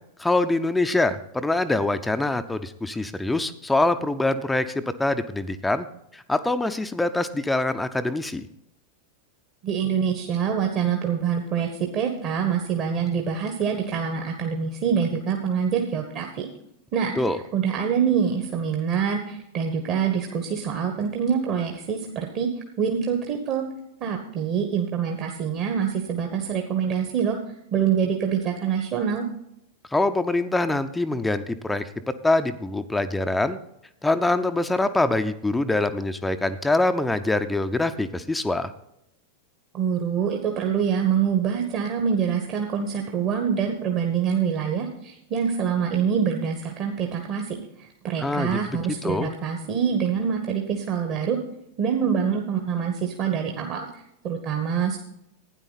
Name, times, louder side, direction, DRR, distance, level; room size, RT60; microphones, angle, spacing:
voice 1, 0.2-5.9 6.1-8.5 17.2-17.4 29.9-33.6 34.0-38.7 48.2-49.3, left 2 dB, 5° left, 10 dB, 0.6 m, -24 dB
voice 2, 9.6-16.5 16.9-17.1 17.5-22.5 22.8-23.6 24.0-27.4 27.7-29.2 39.7-51.4 51.8-53.9 54.2-55.0, right 7 dB, 35° right, 3 dB, 1.3 m, -25 dB
12.5 x 9.6 x 4.1 m, 0.81 s
figure-of-eight pair, 90°, 0 cm